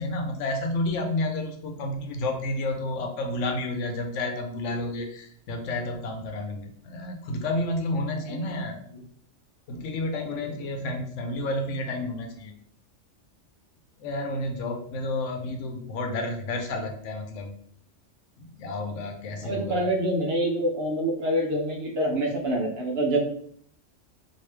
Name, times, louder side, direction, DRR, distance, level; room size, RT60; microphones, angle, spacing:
voice 1, 0.0-8.8 9.7-12.5 14.0-17.6 18.4-19.8, left 2 dB, 80° left, 4 dB, 1.0 m, -30 dB
voice 2, 19.4-23.2, right 1 dB, 60° right, 1 dB, 0.9 m, -26 dB
3.0 x 2.7 x 3.2 m, 0.62 s
omnidirectional pair, 1.3 m